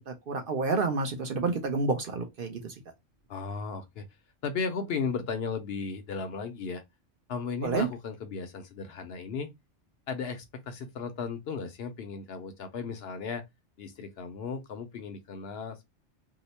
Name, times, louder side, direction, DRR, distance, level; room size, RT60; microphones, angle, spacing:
voice 1, 0.1-2.7 7.6-7.9, right 4 dB, 55° right, 0.7 m, -29 dB
voice 2, 3.3-4.0 4.4-6.8 7.3-9.5 10.1-13.4 13.8-15.9, left 5 dB, 65° left, 0.7 m, -35 dB
2.8 x 2.0 x 4.0 m
omnidirectional pair, 1.2 m